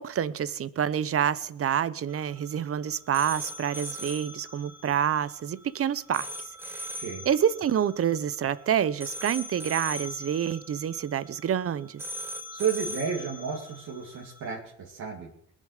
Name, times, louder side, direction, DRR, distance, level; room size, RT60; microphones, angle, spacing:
voice 1, 0.0-6.3 6.6-12.0, right 9 dB, 50° right, 0.8 m, -28 dB
sound 1, 2.1-14.5, equal, 10° right, 1.6 m, -41 dB
voice 2, 12.5-15.3, right 6 dB, 75° right, 2.7 m, -32 dB
20.5 x 7.5 x 6.6 m
cardioid pair, 90°, 30 cm